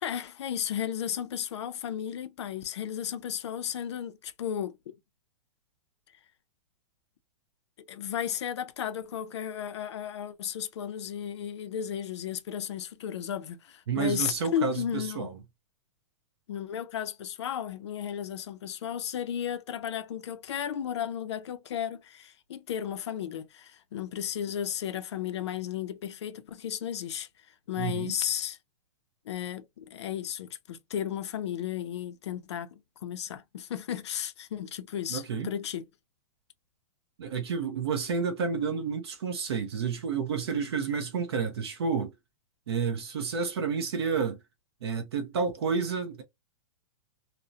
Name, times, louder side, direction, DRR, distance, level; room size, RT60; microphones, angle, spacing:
voice 1, 0.0-4.8 7.9-15.3 16.5-27.3 27.7-28.6 29.3-35.9, left 9 dB, 55° left, 0.4 m, -34 dB
voice 2, 13.9-15.4 27.8-28.1 35.1-35.5 37.2-42.1 42.7-44.4 44.8-46.2, right 5 dB, 50° right, 0.5 m, -30 dB
2.6 x 2.0 x 2.3 m
hypercardioid pair, 180°, 17 cm